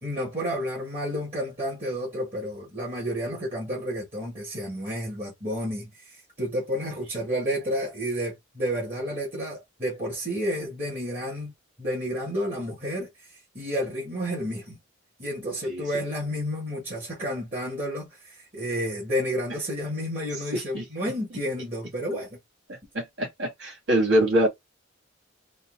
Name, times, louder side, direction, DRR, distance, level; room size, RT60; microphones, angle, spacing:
voice 1, 0.0-11.5 11.8-13.1 13.5-14.8 15.2-22.4, equal, 35° right, 1.8 m, -31 dB
voice 2, 20.5-20.8 22.9-24.5, right 1 dB, 65° right, 2.1 m, -24 dB
4.0 x 2.0 x 3.8 m
head